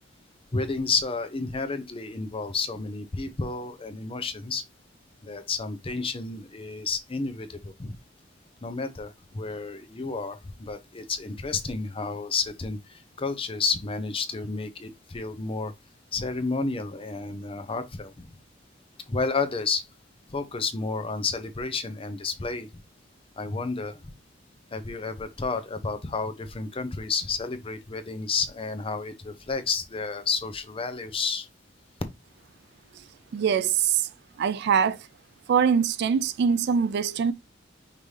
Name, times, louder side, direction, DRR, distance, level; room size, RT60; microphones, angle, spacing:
voice 1, 0.5-4.6 5.2-8.0 8.6-15.7 16.1-18.3 19.1-19.8 20.3-22.7 23.4-24.1 24.7-31.5, left 4 dB, 30° left, 0.7 m, -31 dB
voice 2, 33.3-34.1 34.4-35.0 35.5-37.3, right 7 dB, 60° right, 0.3 m, -23 dB
5.3 x 2.6 x 3.2 m
head